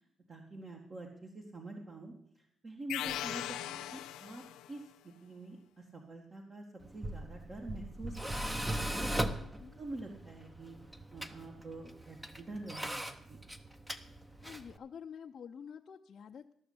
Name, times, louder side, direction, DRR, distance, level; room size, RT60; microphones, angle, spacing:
voice 1, 0.3-6.6 6.9-9.4 9.8-10.8 11.1-13.4, right 2 dB, 40° right, 0 dB, 1.7 m, -47 dB
sound 1, 2.9-4.8, left 13 dB, 90° left, 0.6 m, -39 dB
Tools, 6.8-14.8, right 1 dB, 10° right, 0.8 m, -39 dB
voice 2, 9.4-9.8 14.4-16.5, left 7 dB, 50° left, 0 dB, 0.6 m, -49 dB
13.0 x 6.4 x 8.6 m, 0.70 s
cardioid pair, 80°, 0 cm